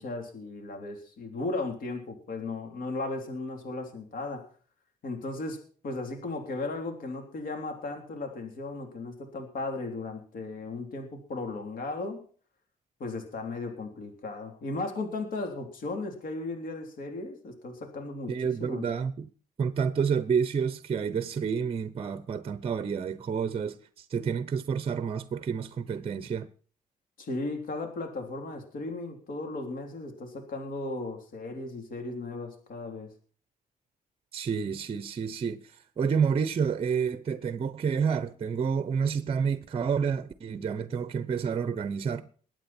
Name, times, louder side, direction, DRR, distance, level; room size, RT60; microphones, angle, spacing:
voice 1, 0.0-4.4 5.0-12.2 13.0-18.9 27.2-33.1, left 2 dB, 70° left, 3.4 m, -36 dB
voice 2, 18.3-19.3 19.6-26.5 34.3-35.6 36.0-42.3, right 6 dB, 40° right, 0.8 m, -29 dB
21.5 x 8.9 x 4.4 m
cardioid pair, 125°, 15 cm